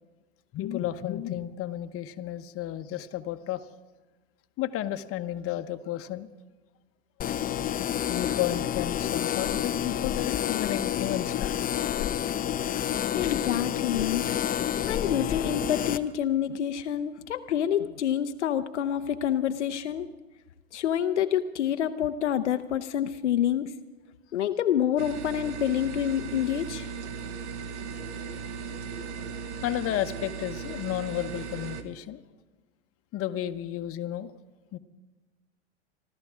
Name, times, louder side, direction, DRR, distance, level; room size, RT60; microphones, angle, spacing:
voice 1, 0.5-3.6 4.6-6.3 8.1-11.5 29.6-32.2 33.1-34.3 34.7-34.8, left 12 dB, 40° left, 8 dB, 1.0 m, -32 dB
sound 1, 7.2-16.0, left 10 dB, 25° left, 0.6 m, -29 dB
voice 2, 13.1-14.2 14.9-20.1 20.7-23.7 24.3-26.8, left 10 dB, 85° left, 9 dB, 0.7 m, -27 dB
sound 2, 25.0-31.8, right 6 dB, 75° right, 1.2 m, -37 dB
26.0 x 13.0 x 3.6 m, 1.2 s
hypercardioid pair, 90°, 34 cm